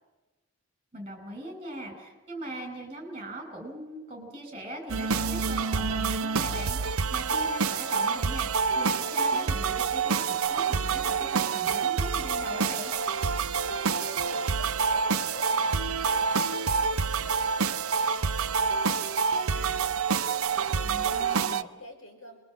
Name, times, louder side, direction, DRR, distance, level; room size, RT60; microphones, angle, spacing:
voice 1, 0.9-12.9 20.8-21.7, right 1 dB, 25° right, 4 dB, 5.5 m, -40 dB
sound 1, 4.9-21.6, right 5 dB, 80° right, 0.7 m, -27 dB
voice 2, 13.7-22.4, equal, 70° left, 2 dB, 5.4 m, -48 dB
27.0 x 22.0 x 7.5 m, 1.2 s
head